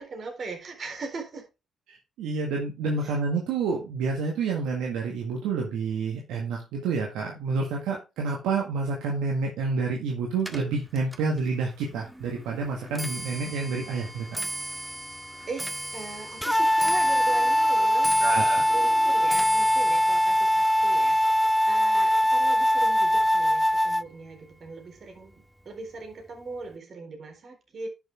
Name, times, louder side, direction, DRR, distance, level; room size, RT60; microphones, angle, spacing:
voice 1, 0.0-1.5 3.0-3.2 15.5-27.9, right 4 dB, 55° right, 4.1 m, -39 dB
voice 2, 1.9-14.4 17.8-17.9 18.2-18.6, right 4 dB, 80° right, 1.8 m, -29 dB
Clock, 10.4-23.7 24.1-24.5 25.3-25.4 25.7-26.1 26.4-26.5, right 1 dB, 10° right, 1.7 m, -38 dB
sound 1, 16.4-24.0, equal, 5° left, 0.4 m, -22 dB
10.5 x 6.5 x 3.5 m
hypercardioid pair, 50°, 0 cm